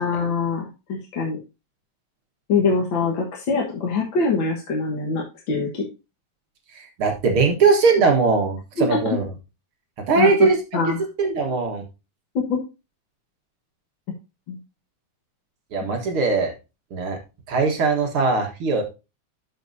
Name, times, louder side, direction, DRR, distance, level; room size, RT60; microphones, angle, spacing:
voice 1, 0.0-1.4 2.5-5.9 8.8-9.0 10.2-10.5 10.7-11.0 12.3-12.6 14.5-14.6, left 4 dB, 45° left, -1 dB, 1.8 m, -23 dB
voice 2, 6.7-9.2 10.1-11.8 15.7-16.5 16.9-17.2 17.5-18.8, right 4 dB, 50° right, 2 dB, 2.2 m, -20 dB
12.5 x 6.1 x 2.7 m, 0.28 s
omnidirectional pair, 3.5 m